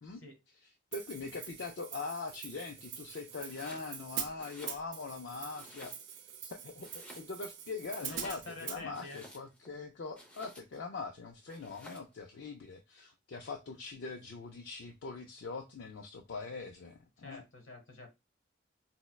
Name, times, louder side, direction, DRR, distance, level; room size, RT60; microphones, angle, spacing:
voice 1, 0.9-6.9 7.2-17.4, left 4 dB, 65° left, 0.4 m, -42 dB
Hi-hat, 0.9-8.8, right 8 dB, 70° right, 0.5 m, -44 dB
Domestic sounds home sounds, 3.4-3.9 4.3-5.2 5.5-6.3 6.8-7.6 7.9-9.7 10.1-10.9 11.5-12.2, equal, 5° left, 0.6 m, -54 dB
voice 2, 8.0-9.2 17.2-18.1, left 2 dB, 85° left, 1.0 m, -47 dB
4.2 x 2.1 x 2.2 m
head